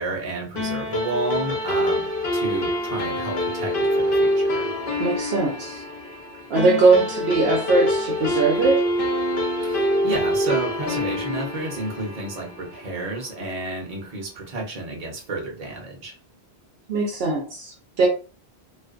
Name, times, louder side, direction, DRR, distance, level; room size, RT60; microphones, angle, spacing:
voice 1, 0.0-4.7 9.6-16.1, right 2 dB, 40° right, 0.8 m, -31 dB
sound 1, 0.6-13.3, left 1 dB, 60° left, 0.9 m, -25 dB
voice 2, 5.0-5.8 6.5-8.8 16.9-18.1, right 3 dB, 70° right, 0.8 m, -20 dB
2.4 x 2.2 x 2.4 m
omnidirectional pair, 1.1 m